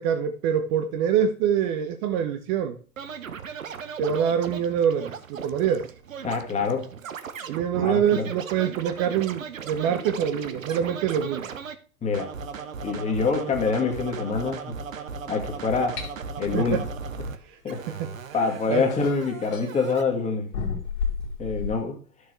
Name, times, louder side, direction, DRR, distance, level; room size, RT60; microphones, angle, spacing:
voice 1, 0.0-2.8 4.0-5.9 7.5-11.5 16.5-16.8 17.9-18.1 18.7-18.8, right 8 dB, 30° right, 0.8 m, -25 dB
Scratching (performance technique), 3.0-11.8 12.1-17.4 17.7-20.0, right 5 dB, 65° right, 1.0 m, -37 dB
voice 2, 6.2-6.9 7.8-8.3 12.0-12.3 12.8-14.7 15.3-16.0 16.4-16.8 17.6-17.8 18.3-20.5 21.4-22.0, left 4 dB, 15° left, 1.8 m, -25 dB
sound 1, 16.0-16.1 18.0-18.1 18.7-19.7 20.5-21.8, left 5 dB, 55° left, 2.3 m, -31 dB
13.0 x 6.6 x 3.3 m
figure-of-eight pair, 100°, 42 cm